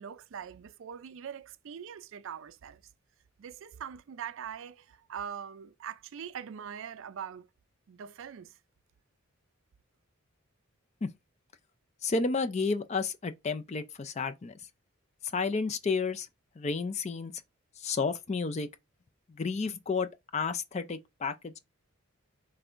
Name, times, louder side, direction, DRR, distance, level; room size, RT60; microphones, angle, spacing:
voice 1, 0.0-2.8 3.4-7.5 7.9-8.5, right 8 dB, 60° right, 0.3 m, -42 dB
voice 2, 12.0-14.5 15.3-16.3 16.6-17.3 17.8-18.7 19.4-21.6, left 4 dB, 30° left, 0.4 m, -31 dB
5.3 x 3.3 x 2.5 m
head